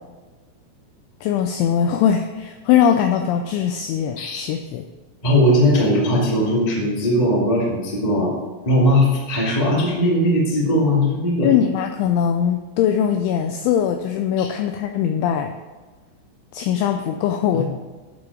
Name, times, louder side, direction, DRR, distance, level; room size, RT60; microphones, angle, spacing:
voice 1, 1.2-4.8 11.4-15.5 16.5-17.7, left 9 dB, 90° left, 5 dB, 2.7 m, -21 dB
voice 2, 5.2-8.3 8.6-11.5 14.4-14.5 17.5-17.6, equal, 55° left, -6 dB, 0.4 m, -19 dB
11.0 x 4.8 x 4.8 m, 1.3 s
omnidirectional pair, 5.9 m